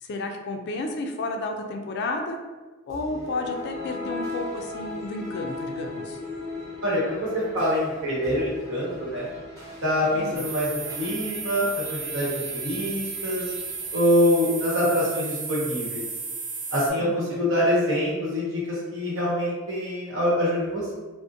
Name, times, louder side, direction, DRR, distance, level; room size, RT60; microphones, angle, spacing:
voice 1, 0.0-2.4 2.9-6.2 10.1-10.4 16.9-17.4, left 2 dB, 55° left, 4 dB, 0.3 m, -32 dB
sound 1, 2.9-15.2, left 2 dB, 20° right, 0.9 m, -39 dB
voice 2, 6.8-9.3 9.8-13.4 13.9-16.0 16.7-20.9, equal, 65° right, -6 dB, 0.9 m, -25 dB
sound 2, 10.4-16.9, right 4 dB, 40° right, 0.4 m, -34 dB
2.5 x 2.0 x 2.6 m, 1.3 s
head